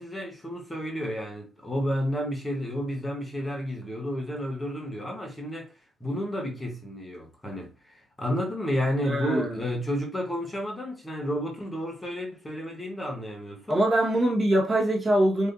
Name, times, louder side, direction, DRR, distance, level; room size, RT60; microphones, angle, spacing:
voice 1, 0.0-5.7 6.0-13.8, equal, 10° left, 1.2 m, -31 dB
voice 2, 9.0-9.6 13.7-15.5, right 1 dB, 25° right, 1.5 m, -23 dB
4.7 x 3.8 x 2.6 m
cardioid pair, 125°, 0 cm